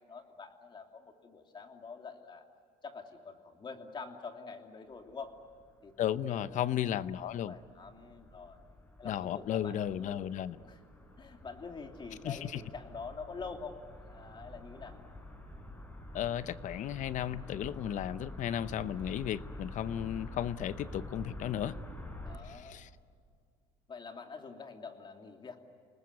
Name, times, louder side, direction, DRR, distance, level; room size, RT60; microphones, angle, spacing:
voice 1, 0.1-2.5 2.8-5.3 5.8-6.7 7.3-8.6 9.0-10.4 10.6-10.8 11.2-15.0 22.2-22.7 23.9-25.6, left 4 dB, 30° left, 4 dB, 3.0 m, -46 dB
sound 1, 5.0-22.4, left 1 dB, 10° left, 4.5 m, -48 dB
voice 2, 6.0-7.5 9.0-10.6 12.2-12.6 16.1-21.7 22.4-22.9, left 11 dB, 55° left, 15 dB, 0.8 m, -34 dB
28.5 x 20.0 x 9.5 m, 2.1 s
cardioid pair, 110°, 15 cm